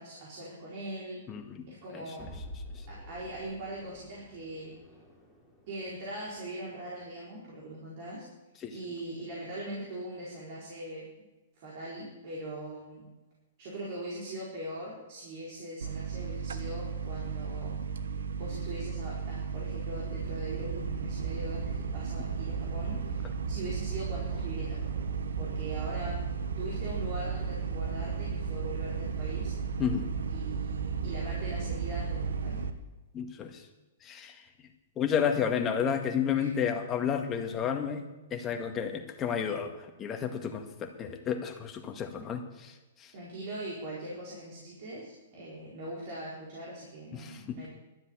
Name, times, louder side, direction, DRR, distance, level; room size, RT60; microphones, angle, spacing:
voice 1, 0.0-1.2 1.7-2.3 2.9-4.7 5.7-8.2 8.7-11.0 11.6-13.0 13.6-17.8 18.3-25.0 25.4-26.2 26.6-29.5 30.3-32.6 36.4-36.5 43.1-47.7, right 1 dB, 50° right, -5 dB, 4.7 m, -41 dB
voice 2, 1.3-1.7 1.9-2.2 2.8-2.9 8.6-8.8 29.8-30.1 33.1-33.7 34.0-34.5 35.0-43.1 47.1-47.6, left 7 dB, 25° left, 4 dB, 1.8 m, -32 dB
sound 1, 2.2-7.3, equal, 5° right, 3.7 m, -49 dB
sound 2, 15.8-32.7, right 5 dB, 80° right, 1.1 m, -34 dB
12.5 x 7.5 x 9.0 m, 1.1 s
hypercardioid pair, 135°, 0 cm